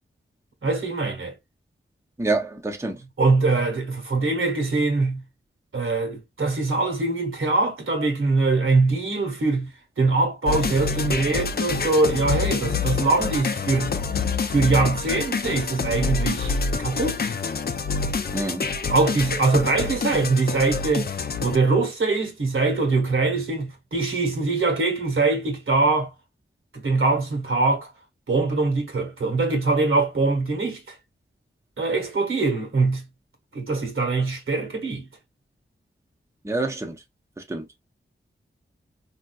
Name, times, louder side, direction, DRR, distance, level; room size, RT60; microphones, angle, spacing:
voice 1, 0.6-1.3 3.2-5.2 5.7-9.7 10.0-13.9 14.5-16.6 16.8-17.3 18.9-21.1 21.4-26.1 26.7-27.9 28.3-31.0 31.8-33.0 33.5-35.1, right 3 dB, 75° right, 1.3 m, -23 dB
voice 2, 2.2-3.0 18.3-18.7 36.4-36.9 37.5-37.6, right 2 dB, 15° right, 0.7 m, -26 dB
sound 1, 10.5-21.6, left 5 dB, 50° left, 0.5 m, -27 dB
3.7 x 2.7 x 2.3 m
wide cardioid pair, 65°, 21 cm